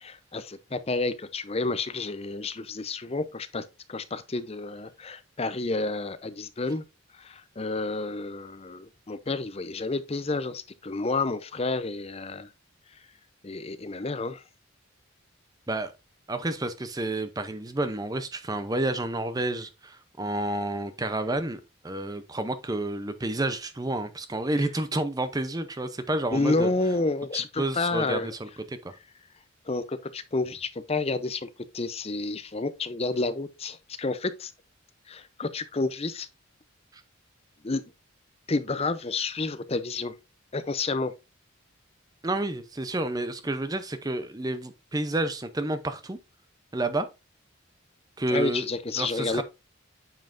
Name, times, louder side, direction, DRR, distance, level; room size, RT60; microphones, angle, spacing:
voice 1, 0.0-6.8 7.2-12.5 13.4-14.4 26.3-28.3 29.7-34.5 35.1-36.3 37.6-37.8 38.5-40.1 40.5-41.1 48.3-49.4, left 3 dB, 30° left, 0.6 m, -30 dB
voice 2, 16.3-26.7 27.3-29.0 36.9-37.0 42.2-46.2 46.7-47.1 48.2-48.7 49.0-49.4, right 2 dB, 15° right, 0.6 m, -30 dB
8.9 x 5.5 x 2.5 m
head